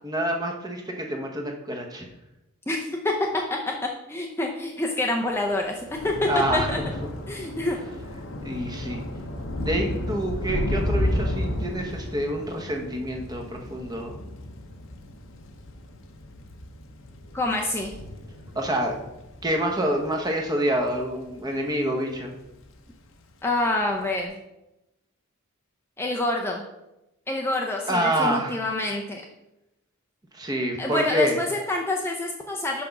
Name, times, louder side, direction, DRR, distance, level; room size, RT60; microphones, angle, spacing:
voice 1, 0.0-2.1 6.3-6.8 8.4-9.0 9.6-14.2 18.5-19.0 19.4-22.3 27.9-28.6 30.3-31.4, right 1 dB, 15° right, 2 dB, 0.9 m, -27 dB
voice 2, 2.7-3.7 4.1-6.1 6.5-6.8 7.3-7.8 17.3-17.9 23.4-24.4 26.0-26.6 27.3-29.2 30.8-32.8, left 2 dB, 10° left, 0 dB, 0.5 m, -27 dB
Thunder / Rain, 5.4-22.0 22.3-22.8 23.0-23.2, left 1 dB, 60° left, 0.8 m, -33 dB
5.9 x 5.2 x 5.8 m, 0.93 s
head